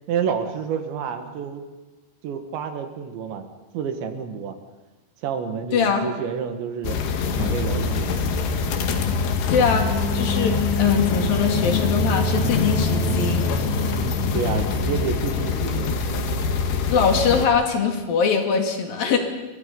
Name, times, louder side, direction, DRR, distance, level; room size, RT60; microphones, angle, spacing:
voice 1, 0.1-1.6 2.2-3.5 3.7-4.6 5.2-7.0 7.3-8.2 13.8-15.9, right 7 dB, 85° right, 7 dB, 4.2 m, -29 dB
voice 2, 5.7-6.1 9.5-13.5 16.9-19.2, left 6 dB, 60° left, 4 dB, 4.0 m, -22 dB
sound 1, 6.8-17.5, left 4 dB, 75° left, 4.0 m, -23 dB
28.0 x 24.0 x 5.5 m, 1.2 s
omnidirectional pair, 5.0 m